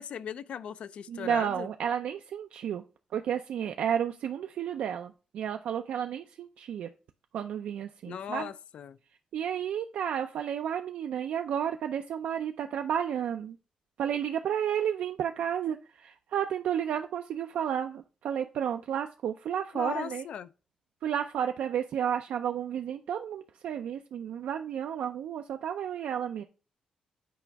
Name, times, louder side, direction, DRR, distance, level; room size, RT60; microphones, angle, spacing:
voice 1, 0.0-1.7 8.1-9.0 19.7-20.5, left 8 dB, 55° left, 0.4 m, -38 dB
voice 2, 1.1-2.8 3.1-6.9 7.3-8.5 9.3-13.6 14.0-20.2 21.0-26.4, right 9 dB, 70° right, 0.4 m, -32 dB
8.3 x 4.9 x 3.4 m
wide cardioid pair, 170°, 2 cm